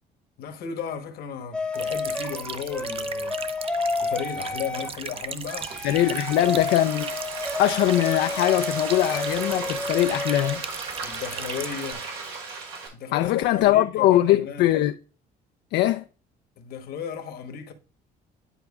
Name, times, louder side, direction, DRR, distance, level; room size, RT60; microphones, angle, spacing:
voice 1, 0.4-3.4 4.0-5.7 6.2-6.6 11.0-12.1 12.9-14.7 16.6-17.7, left 7 dB, 65° left, 1.1 m, -34 dB
sound 1, 1.5-4.9 5.5-10.6, left 3 dB, 5° left, 0.8 m, -30 dB
sound 2, 1.7-11.9, right 6 dB, 35° right, 0.5 m, -37 dB
Frying (food), 5.0-12.9, right 4 dB, 90° right, 2.2 m, -36 dB
voice 2, 5.8-7.1 7.6-10.6 13.1-15.0 15.7-16.0, left 14 dB, 85° left, 0.4 m, -21 dB
9.9 x 4.6 x 2.3 m
cardioid pair, 110°, 17 cm